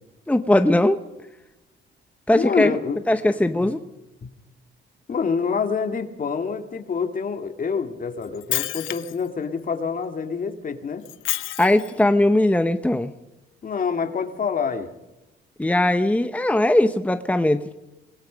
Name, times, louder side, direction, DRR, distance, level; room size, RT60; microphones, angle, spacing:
voice 1, 0.3-1.0 2.3-2.8 3.1-3.8 11.6-13.1 15.6-17.8, left 1 dB, 5° left, 9 dB, 1.0 m, -19 dB
voice 2, 2.4-3.0 3.6-3.7 4.2-4.3 5.1-11.1 13.6-14.9, left 5 dB, 45° left, 6 dB, 2.4 m, -26 dB
Shatter, 8.2-9.3 11.0-12.0, left 16 dB, 85° left, 0.8 m, -29 dB
27.0 x 20.5 x 5.3 m, 0.98 s
cardioid pair, 90°, 20 cm